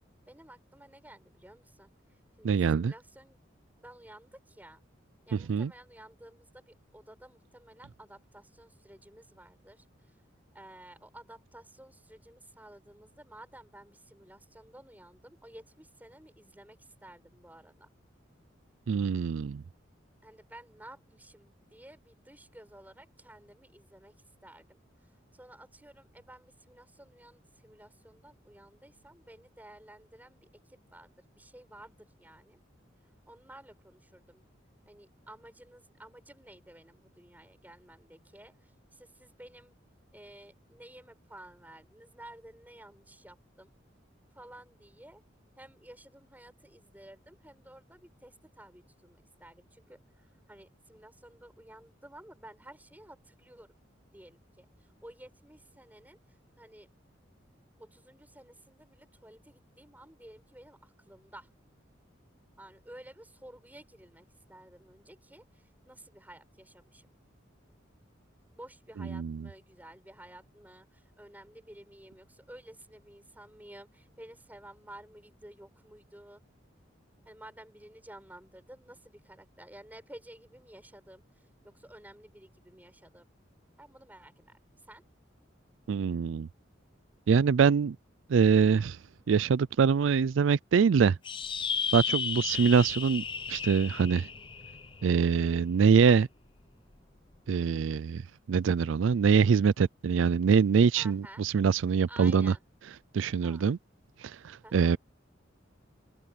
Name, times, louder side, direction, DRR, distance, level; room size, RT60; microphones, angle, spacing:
voice 1, 0.3-3.4 3.8-4.8 5.3-10.2 10.5-17.9 20.2-24.1 24.4-32.6 33.3-34.4 34.9-39.7 40.1-43.7 44.3-45.2 45.6-53.7 54.1-56.9 57.8-61.5 62.6-67.1 68.5-76.4 77.2-83.3 83.8-85.0 100.9-101.4 102.1-102.6 103.4-103.7 104.6-105.0, right 1 dB, 10° right, 7.6 m, -53 dB
voice 2, 2.4-2.9 5.5-5.7 18.9-19.6 69.1-69.5 85.9-86.5 87.3-88.0 88.3-89.0 89.3-91.2 91.9-94.3 95.0-96.3 97.5-98.2 98.5-102.5 103.1-103.8 104.2-105.0, right 6 dB, 80° right, 0.4 m, -24 dB
sound 1, 91.2-96.0, left 6 dB, 25° left, 0.7 m, -34 dB
open air
head